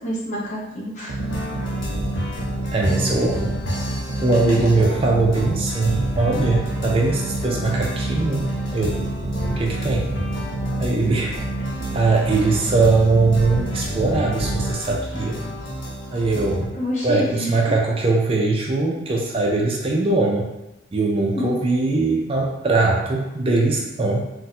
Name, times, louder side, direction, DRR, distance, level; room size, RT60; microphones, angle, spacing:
voice 1, 0.0-1.1 16.7-17.5 21.3-21.5, equal, 40° left, -5 dB, 0.9 m, -27 dB
sound 1, 1.1-14.7, right 2 dB, 85° right, 0.6 m, -29 dB
sound 2, 1.2-16.7, equal, 75° left, 0.7 m, -31 dB
voice 2, 2.7-3.5 4.2-9.0 9.5-10.1 10.8-11.4 11.9-15.4 16.1-16.7 17.0-20.5 20.9-24.3, right 3 dB, 30° right, -1 dB, 0.3 m, -21 dB
2.6 x 2.1 x 4.0 m, 0.93 s
head